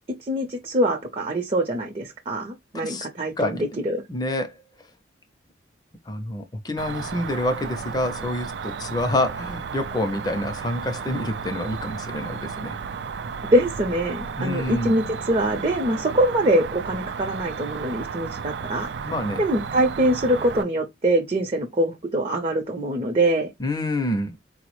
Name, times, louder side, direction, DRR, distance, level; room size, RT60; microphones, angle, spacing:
voice 1, 0.3-4.0 13.5-18.9 19.4-23.5, right 1 dB, 35° right, 0.6 m, -23 dB
voice 2, 2.7-3.1 3.4-4.6 6.1-12.8 14.4-14.9 19.0-19.4 23.6-24.4, left 1 dB, 25° left, 0.5 m, -27 dB
Cricket, 6.8-20.6, right 6 dB, 75° right, 0.4 m, -33 dB
4.4 x 2.0 x 3.0 m
head